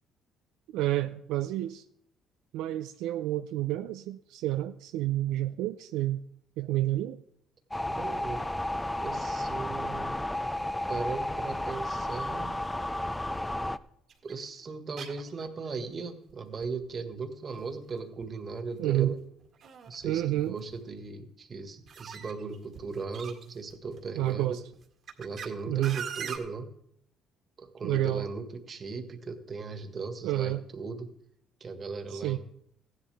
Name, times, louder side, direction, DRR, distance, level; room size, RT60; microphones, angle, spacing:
voice 1, 0.7-1.8 2.5-6.2 6.6-7.2 18.8-19.1 20.0-20.6 24.2-24.6 25.7-26.0 27.8-28.2 30.2-30.6 32.1-32.4, right 14 dB, 85° right, 9 dB, 0.4 m, -29 dB
sound 1, 7.7-13.8, left 1 dB, 10° left, 0.5 m, -32 dB
voice 2, 7.8-8.5 9.0-10.2 10.9-12.5 14.2-19.2 19.9-24.6 25.2-26.7 27.6-31.1 31.6-32.4, right 4 dB, 40° right, 6 dB, 1.8 m, -38 dB
sound 2, 14.1-14.3 15.0-15.7 15.9-16.0 16.3-16.4 16.6-17.1 18.2-18.3 19.0-20.1 20.4-20.7 21.9-24.0 24.7-25.5 25.8-26.4, right 7 dB, 55° right, 2.0 m, -41 dB
15.5 x 11.0 x 3.5 m, 0.70 s
cardioid pair, 90°, 0 cm